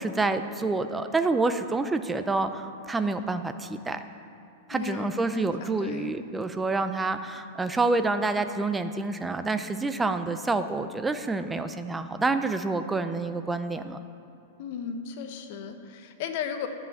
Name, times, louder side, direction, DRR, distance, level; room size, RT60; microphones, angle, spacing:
voice 1, 0.0-4.0 4.7-14.0, right 3 dB, 10° right, 9 dB, 0.4 m, -28 dB
voice 2, 4.7-5.1 5.3-6.1 14.6-16.7, left 7 dB, 50° left, 6 dB, 1.0 m, -35 dB
10.5 x 5.7 x 8.4 m, 2.7 s
supercardioid pair, 160°, 0 cm